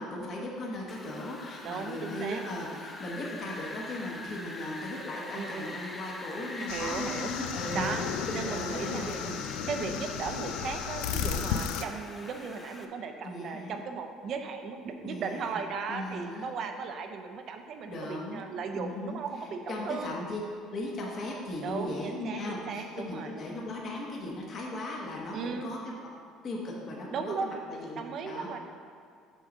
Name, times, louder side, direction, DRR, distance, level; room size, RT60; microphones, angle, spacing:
voice 1, 0.0-9.4 9.8-10.1 11.2-11.6 13.2-13.8 15.0-15.6 15.9-16.5 17.9-18.4 18.7-20.4 20.7-26.1 26.4-28.5, left 1 dB, 35° left, -2 dB, 1.2 m, -37 dB
Wind, 0.9-12.8, left 2 dB, 15° left, 0.5 m, -44 dB
voice 2, 1.6-2.4 5.3-5.8 6.7-7.3 7.7-9.4 9.7-20.1 21.6-23.3 25.3-25.7 27.1-27.5 28.0-28.6, right 5 dB, 40° right, 6 dB, 0.6 m, -36 dB
sound 1, 6.7-11.8, left 8 dB, 85° left, 0.5 m, -34 dB
8.1 x 4.0 x 6.1 m, 2.4 s
cardioid pair, 165°, 0 cm